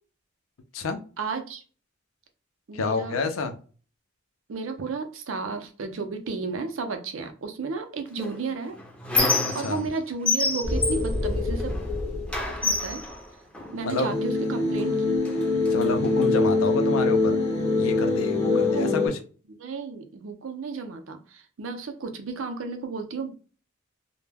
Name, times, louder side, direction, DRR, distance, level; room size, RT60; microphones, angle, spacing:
voice 1, 1.2-1.6 2.7-3.3 4.5-8.8 9.5-11.7 12.4-13.0 13.7-15.0 18.5-19.0 19.6-23.3, right 4 dB, 75° right, 7 dB, 0.5 m, -33 dB
voice 2, 2.7-3.6 9.6-9.8 13.8-14.1 15.7-17.4 17.8-19.2, left 4 dB, 90° left, 7 dB, 0.5 m, -28 dB
Squeak, 8.2-10.0 10.3-11.9 12.3-14.0 14.8-14.9 15.2-16.3, left 3 dB, 5° left, 0.4 m, -28 dB
sound 1, 10.6-12.8 13.6-19.1, left 3 dB, 35° left, 0.7 m, -24 dB
2.1 x 2.1 x 3.2 m, 0.38 s
head